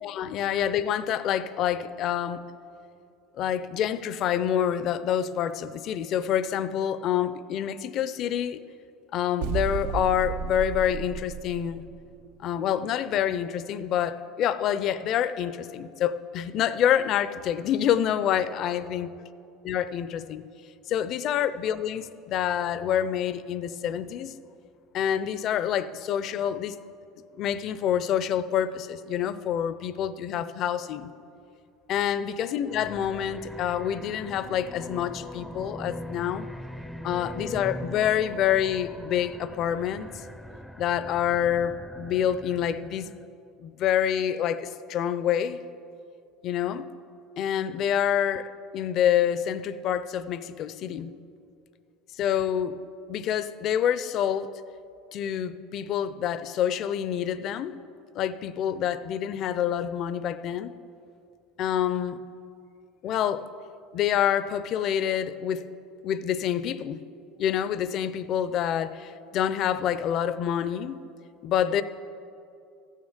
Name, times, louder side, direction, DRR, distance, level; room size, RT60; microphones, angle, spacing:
voice 1, 0.0-2.4 3.4-8.6 9.1-11.8 12.4-19.1 19.6-20.5 20.9-24.3 24.9-26.8 27.3-31.1 31.9-36.5 37.0-40.1 40.8-43.1 43.6-45.6 46.4-46.9 47.4-48.5 48.7-51.1 52.2-52.8 53.1-54.5 55.1-57.8 58.1-60.7 61.6-62.2 63.0-63.4 63.9-65.7 66.0-67.0 67.4-71.1 71.4-71.8, left 9 dB, 50° left, 14 dB, 0.5 m, -27 dB
sound 1, 9.4-12.1, right 7 dB, 75° right, 0.6 m, -33 dB
sound 2, 32.7-43.3, left 1 dB, ahead, 0.5 m, -41 dB
14.0 x 6.4 x 7.3 m, 2.6 s
supercardioid pair, 110°, 0 cm